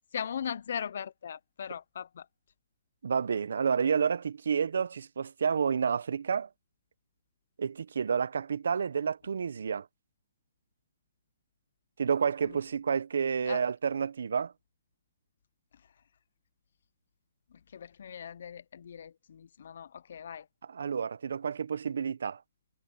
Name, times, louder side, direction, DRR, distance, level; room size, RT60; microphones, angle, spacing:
voice 1, 0.1-2.3 12.4-12.5 13.4-13.6 17.7-20.5, left 8 dB, 60° left, 0.4 m, -39 dB
voice 2, 3.0-6.5 7.6-9.9 12.0-14.5 20.7-22.4, right 6 dB, 80° right, 0.6 m, -30 dB
hypercardioid pair, 175°, 0 cm